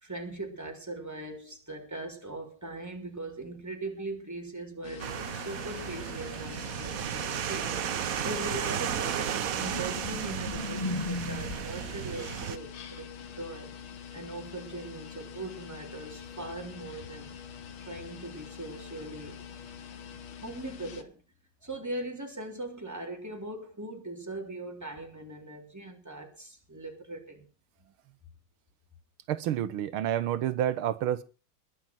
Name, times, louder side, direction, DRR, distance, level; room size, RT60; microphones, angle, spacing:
voice 1, 0.0-13.7 14.1-17.3 17.8-19.4 20.4-21.2 21.6-27.4, right 2 dB, 10° right, 3.4 m, -40 dB
sound 1, 4.8-21.0, left 7 dB, 80° left, 2.1 m, -45 dB
sound 2, 5.0-12.6, right 9 dB, 55° right, 1.0 m, -34 dB
sound 3, 8.9-11.9 14.7-14.9, left 2 dB, 20° left, 1.3 m, -37 dB
voice 2, 29.3-31.2, right 11 dB, 80° right, 1.7 m, -29 dB
21.0 x 7.1 x 6.1 m
omnidirectional pair, 2.3 m